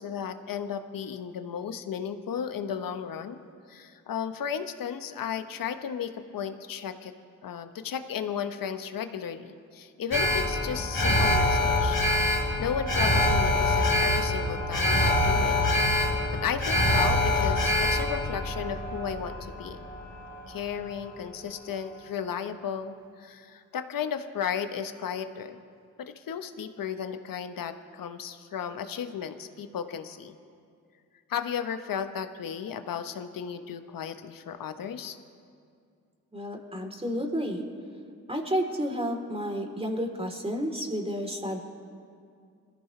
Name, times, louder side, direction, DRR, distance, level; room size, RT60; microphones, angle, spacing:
voice 1, 0.0-3.4 3.7-7.1 7.4-12.0 12.6-15.6 16.3-19.8 20.5-25.6 26.0-30.3 31.3-35.2, left 7 dB, 65° left, 9 dB, 1.3 m, -34 dB
Alarm, 10.1-20.4 20.7-20.8, left 1 dB, 30° left, 4.3 m, -25 dB
voice 2, 36.3-37.6 38.3-41.6, equal, 15° right, 2 dB, 3.7 m, -31 dB
26.0 x 14.5 x 3.4 m, 2.3 s
hypercardioid pair, 40°, 36 cm